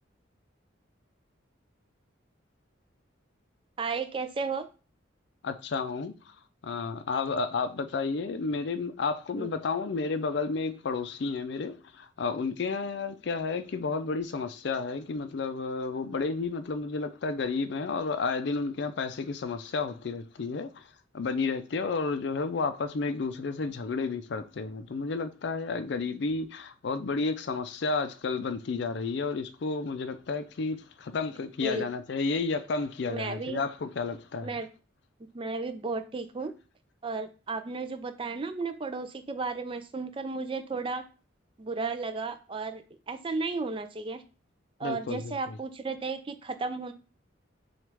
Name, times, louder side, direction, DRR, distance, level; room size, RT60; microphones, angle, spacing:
voice 1, 3.8-4.7 9.4-9.5 31.6-31.9 33.0-33.6 34.4-34.7 35.2-36.5 37.0-41.0 41.6-44.2 44.8-46.9, right 3 dB, 25° right, 0.3 m, -34 dB
voice 2, 5.4-6.1 6.6-20.8 21.1-34.6 44.8-45.6, left 4 dB, 60° left, 0.4 m, -31 dB
6.0 x 2.4 x 3.4 m
head